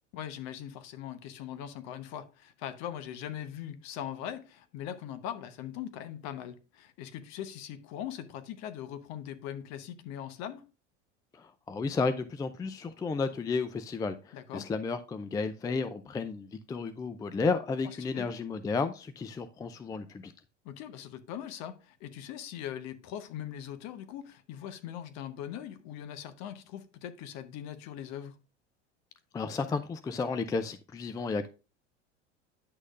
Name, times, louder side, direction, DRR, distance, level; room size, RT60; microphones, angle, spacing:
voice 1, 0.1-10.7 14.3-14.7 17.8-18.3 20.6-28.4, left 10 dB, 45° left, 1.0 m, -41 dB
voice 2, 11.3-20.3 29.3-31.5, left 4 dB, 10° left, 0.4 m, -32 dB
9.9 x 6.2 x 2.5 m
figure-of-eight pair, 80°, 36 cm